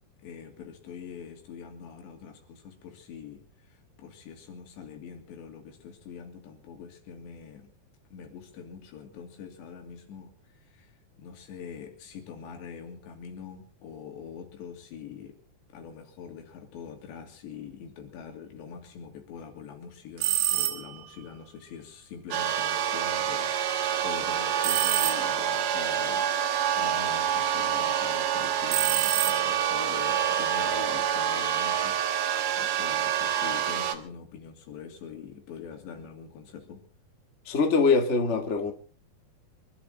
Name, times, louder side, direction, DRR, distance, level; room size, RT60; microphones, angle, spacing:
voice 1, 0.2-7.7 8.1-10.9 11.2-15.4 15.7-36.8, left 7 dB, 90° left, 4.9 m, -44 dB
sound 1, 20.2-21.1 24.6-25.6 28.7-29.8, right 14 dB, 85° right, 3.2 m, -28 dB
sound 2, 22.3-34.0, right 9 dB, 60° right, 2.4 m, -27 dB
voice 2, 37.4-38.7, left 4 dB, 55° left, 0.7 m, -23 dB
25.5 x 12.0 x 4.0 m
omnidirectional pair, 4.9 m